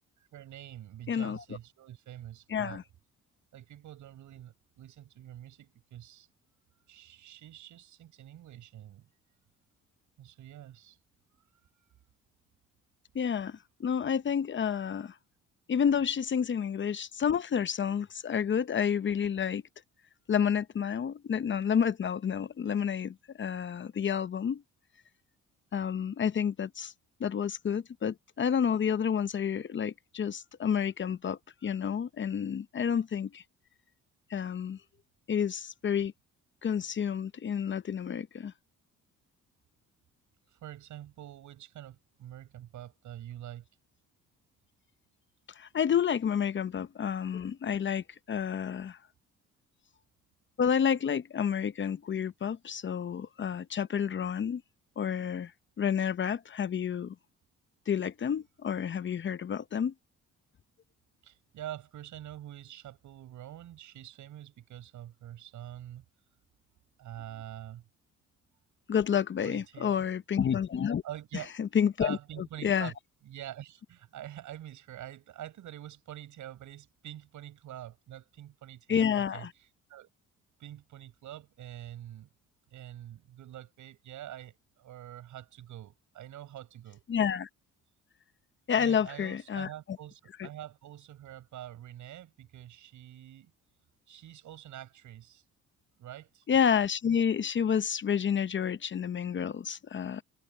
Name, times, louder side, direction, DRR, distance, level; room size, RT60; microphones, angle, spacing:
voice 1, 0.3-2.8 3.5-6.3 6.9-9.1 10.2-11.0 40.5-43.7 61.2-66.0 67.0-67.9 69.4-70.1 71.0-71.5 72.0-72.9 73.2-80.1 80.6-82.3 82.7-87.0 88.8-93.5 94.1-95.4 96.0-96.4, right 12 dB, 75° right, 8.0 m, -46 dB
voice 2, 1.1-1.4 2.5-2.8 13.1-15.1 15.7-19.6 20.3-24.6 25.7-26.9 27.2-33.4 34.3-34.8 35.3-36.1 36.6-38.5 45.6-49.0 50.6-54.6 55.0-55.5 55.8-57.1 57.9-59.9 68.9-71.0 71.6-72.2 72.6-72.9 78.9-79.5 87.1-87.5 88.7-89.7 96.5-100.2, left 7 dB, 40° left, 0.7 m, -29 dB
cardioid pair, 90°, 30 cm